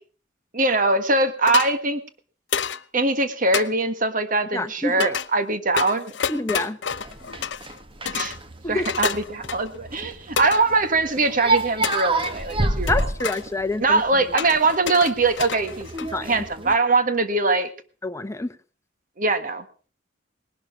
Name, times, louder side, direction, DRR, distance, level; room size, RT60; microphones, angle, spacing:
voice 1, 0.5-2.0 2.9-6.1 8.1-8.4 8.7-13.1 13.8-15.9 16.2-17.7 19.2-19.9, right 3 dB, 45° right, 10 dB, 1.7 m, -22 dB
sound 1, 1.5-1.7 2.5-2.8 3.5-3.7 5.0-5.3 5.8-7.8 8.1-8.4 8.8-9.8 10.4-10.6 11.8-12.5 12.9-13.4 14.4-16.2, left 7 dB, 70° left, 0.8 m, -29 dB
voice 2, 4.5-5.2 6.3-6.8 8.6-8.9 12.9-14.0 16.0-16.4 18.0-18.5, left 2 dB, 15° left, 9 dB, 1.0 m, -27 dB
sound 2, 6.9-16.8, right 2 dB, 30° right, 1.4 m, -29 dB
19.5 x 12.0 x 5.9 m, 0.40 s
head